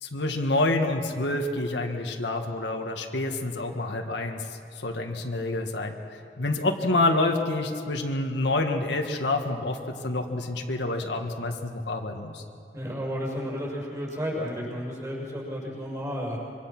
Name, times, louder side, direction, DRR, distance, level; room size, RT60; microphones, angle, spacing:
voice 1, 0.0-4.4 4.8-6.0 6.4-9.8 10.0-12.4, left 2 dB, 70° left, 3 dB, 1.7 m, -27 dB
voice 2, 12.7-16.4, equal, 20° right, -4 dB, 6.7 m, -32 dB
25.0 x 25.0 x 6.1 m, 2.5 s
head